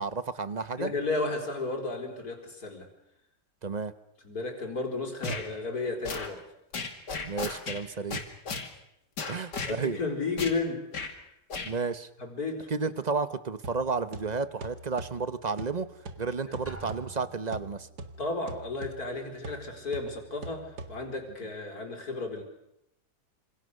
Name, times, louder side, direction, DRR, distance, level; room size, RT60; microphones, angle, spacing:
voice 1, 0.0-0.9 3.6-3.9 7.2-8.2 9.3-10.0 11.6-12.1 12.7-15.9 16.2-17.9, right 4 dB, 30° right, 13 dB, 0.9 m, -32 dB
voice 2, 0.8-2.9 4.2-6.4 9.3-11.2 12.2-12.7 16.4-16.5 18.2-22.4, left 3 dB, 60° left, 3 dB, 4.7 m, -33 dB
sound 1, 5.2-5.5 6.0-6.3 6.7-7.8 8.1-8.7 9.2-9.8 10.4-10.6 10.9-11.1 11.5-11.7, left 4 dB, 85° left, 3.1 m, -34 dB
sound 2, 13.6-21.4, right 2 dB, 70° right, 2.3 m, -44 dB
Drum, 16.7-17.9, right 3 dB, 10° right, 3.9 m, -46 dB
27.0 x 27.0 x 6.6 m, 0.85 s
omnidirectional pair, 1.8 m